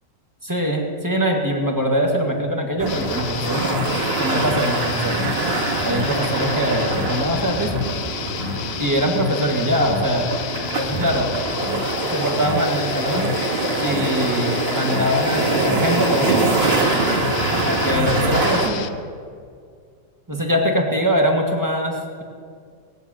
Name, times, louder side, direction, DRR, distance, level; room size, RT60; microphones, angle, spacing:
voice 1, 0.4-3.7 4.2-5.2 5.8-7.8 8.8-10.3 10.8-11.3 12.1-13.3 13.8-16.5 17.6-18.9 20.3-22.2, equal, 10° right, 0 dB, 1.7 m, -22 dB
sound 1, 2.8-18.7, right 3 dB, 35° right, 2.0 m, -24 dB
sound 2, 2.9-18.9, left 10 dB, 85° left, 1.4 m, -30 dB
18.5 x 8.0 x 8.9 m, 2.1 s
omnidirectional pair, 1.9 m